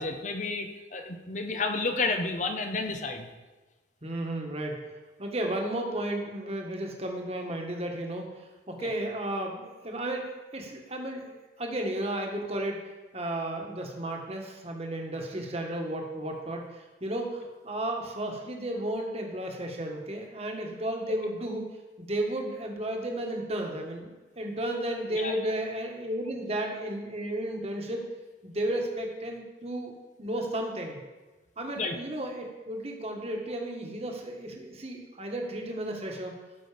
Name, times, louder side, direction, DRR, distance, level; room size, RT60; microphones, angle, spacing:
voice 1, 0.0-3.3 8.8-8.9 25.1-25.4 31.7-32.0, left 3 dB, 40° left, 5 dB, 0.9 m, -31 dB
voice 2, 4.0-4.8 5.2-10.3 10.5-12.8 13.1-21.6 22.0-28.0 28.4-31.0 31.6-36.3, right 1 dB, 35° right, 1 dB, 1.6 m, -33 dB
14.5 x 6.2 x 5.1 m, 1.2 s
head